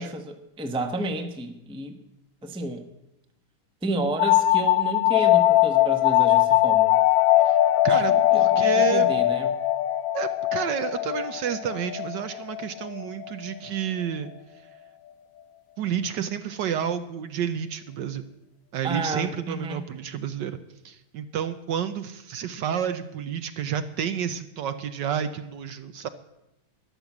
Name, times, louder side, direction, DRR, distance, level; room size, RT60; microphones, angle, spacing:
voice 1, 0.0-2.0 2.4-2.8 3.8-7.0 7.9-9.5 18.8-19.8, right 2 dB, 5° right, 6 dB, 0.6 m, -31 dB
sound 1, 4.2-13.6, left 14 dB, 75° left, 1.4 m, -21 dB
voice 2, 7.8-9.1 10.1-14.3 15.8-18.3 18.7-26.1, right 8 dB, 70° right, 10 dB, 1.2 m, -30 dB
13.0 x 11.0 x 7.2 m, 0.90 s
omnidirectional pair, 2.3 m